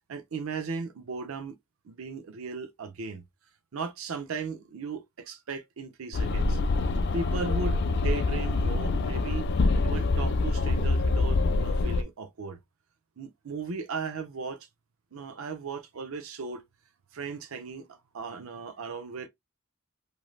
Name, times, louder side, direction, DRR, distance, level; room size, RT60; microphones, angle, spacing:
voice 1, 0.1-1.5 1.8-3.2 3.7-6.6 7.1-9.5 9.8-12.6 13.2-14.7 15.1-16.6 17.1-19.3, right 4 dB, 85° right, 0.6 m, -37 dB
sound 1, 6.1-12.0, left 3 dB, 55° left, 0.4 m, -25 dB
3.1 x 2.7 x 2.3 m
head